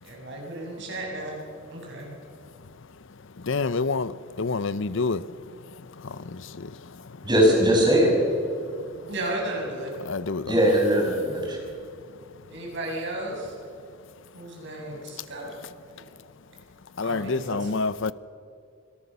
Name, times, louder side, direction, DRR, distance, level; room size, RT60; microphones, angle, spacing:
voice 1, 0.0-1.4 1.7-2.1 9.1-9.9 12.5-13.5 14.3-15.6 16.0-16.1 17.0-17.7, right 1 dB, 60° right, 7.0 m, -34 dB
voice 2, 3.5-4.1 4.4-5.2 10.1-10.5 17.0-18.1, left 4 dB, 65° left, 0.7 m, -27 dB
voice 3, 7.2-8.1 10.4-11.6, equal, 20° right, 6.2 m, -20 dB
25.5 x 18.0 x 6.9 m
head